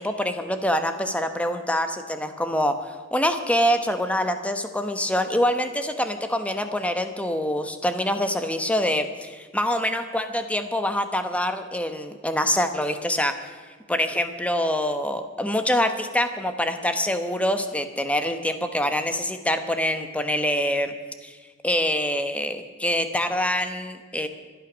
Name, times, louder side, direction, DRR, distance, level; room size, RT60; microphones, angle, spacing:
voice 1, 0.0-2.9 3.1-13.5 13.9-20.9 21.2-21.4 21.6-24.3, left 1 dB, 5° left, 8 dB, 1.1 m, -25 dB
25.5 x 9.1 x 6.2 m, 1.4 s
head